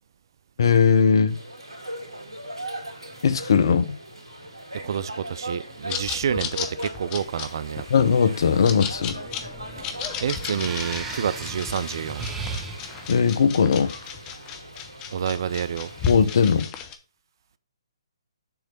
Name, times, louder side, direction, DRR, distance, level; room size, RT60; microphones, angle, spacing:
voice 1, 0.6-1.4 3.2-4.0 7.9-9.2 13.1-13.9 16.1-16.7, left 6 dB, 55° left, 0.7 m, -19 dB
sound 1, 1.3-16.6, right 1 dB, 80° right, 2.3 m, -39 dB
voice 2, 4.8-7.8 9.8-12.3 15.1-15.9, right 8 dB, 50° right, 0.4 m, -29 dB
sound 2, 5.9-17.0, left 7 dB, 20° left, 0.7 m, -34 dB
sound 3, 8.4-14.1, right 4 dB, 10° right, 0.8 m, -38 dB
6.9 x 3.3 x 6.0 m
figure-of-eight pair, 135°, 3 cm